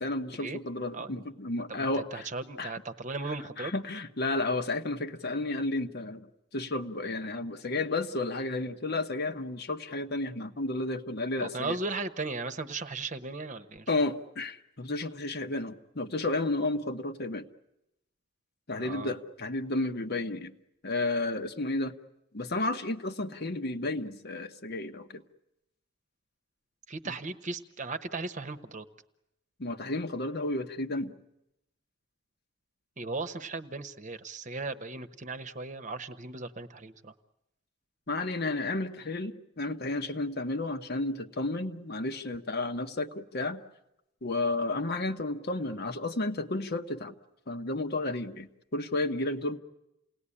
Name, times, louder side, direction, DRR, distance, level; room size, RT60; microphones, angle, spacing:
voice 1, 0.0-2.3 2.6-2.7 3.6-11.8 13.9-17.5 18.7-20.5 20.8-21.9 22.3-25.2 27.0-27.1 29.6-31.1 38.1-43.6 44.2-47.1 47.5-49.6, left 2 dB, 55° left, 8 dB, 1.1 m, -32 dB
voice 2, 1.8-3.7 11.4-13.9 18.8-19.1 26.9-28.8 33.0-37.1, right 3 dB, 40° right, 10 dB, 1.0 m, -37 dB
28.5 x 18.5 x 9.9 m, 0.90 s
head